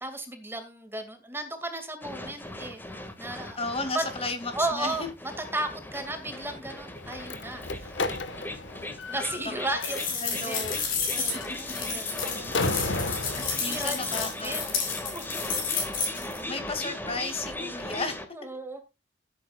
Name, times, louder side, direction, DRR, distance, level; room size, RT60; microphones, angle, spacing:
voice 1, 0.0-2.8 3.2-3.6 3.9-4.1 4.5-5.0 5.5-8.1 9.1-10.6 11.1-12.5 13.0-14.6 15.1-15.3 15.7-16.6 17.7-17.8 18.3-18.8, right 2 dB, 15° right, 2.3 m, -35 dB
sound 1, 2.0-18.3, left 1 dB, 10° left, 2.0 m, -39 dB
voice 2, 3.6-5.1 10.2-10.8 11.9-12.0 13.6-15.0 16.5-18.2, left 3 dB, 30° left, 2.4 m, -34 dB
Slam, 7.0-14.4, left 3 dB, 90° left, 1.5 m, -35 dB
sound 2, 9.8-16.4, left 5 dB, 50° left, 6.7 m, -31 dB
17.0 x 8.9 x 2.4 m
head